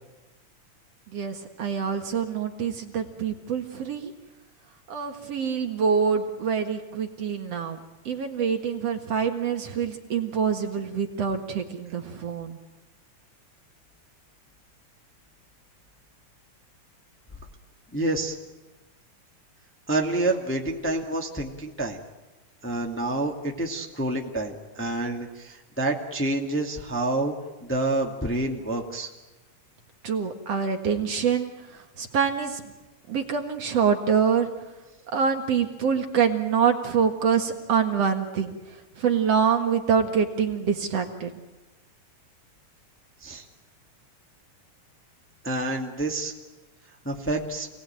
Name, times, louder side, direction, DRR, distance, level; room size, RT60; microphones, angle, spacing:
voice 1, 1.1-4.1 4.9-7.8 8.1-12.6 30.0-32.6 33.1-34.5 35.1-38.5 39.0-41.3, right 6 dB, 55° right, 4 dB, 2.7 m, -25 dB
voice 2, 17.9-18.4 19.9-22.0 22.6-27.3 27.6-29.1 43.2-43.4 45.4-46.3 47.0-47.7, right 2 dB, 5° left, 0 dB, 1.8 m, -28 dB
28.0 x 19.0 x 9.0 m, 1.1 s
omnidirectional pair, 3.6 m